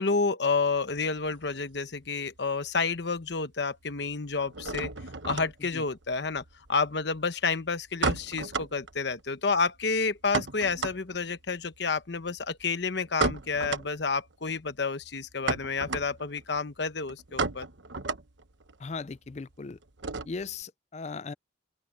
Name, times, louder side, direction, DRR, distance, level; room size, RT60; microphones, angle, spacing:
voice 1, 0.0-4.9 5.2-6.4 6.7-17.7, left 4 dB, 60° left, 1.0 m, -30 dB
sound 1, 0.8-2.4 2.6-3.3 3.6-20.6, right 3 dB, 70° right, 1.1 m, -35 dB
voice 2, 18.8-19.8 20.3-21.3, left 4 dB, 35° left, 0.4 m, -38 dB
open air
head